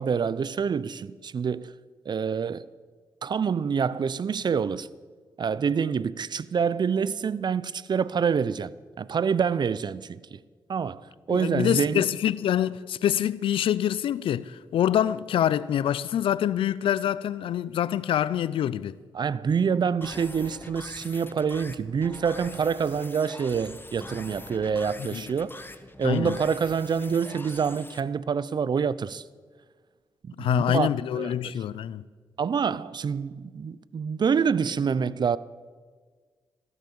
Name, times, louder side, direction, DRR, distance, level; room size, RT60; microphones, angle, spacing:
voice 1, 0.0-1.7 2.1-2.7 3.2-4.9 5.4-8.7 9.0-10.4 10.7-12.1 19.1-25.7 26.0-29.2 30.2-30.9 31.2-31.3 32.4-35.4, right 6 dB, 55° right, 0.6 m, -26 dB
voice 2, 11.3-19.0 25.1-25.2 26.0-26.4 30.4-32.0, left 10 dB, 85° left, 0.5 m, -25 dB
sound 1, 20.0-28.0, left 2 dB, 25° left, 1.1 m, -44 dB
15.5 x 11.0 x 7.0 m
cardioid pair, 55°, 9 cm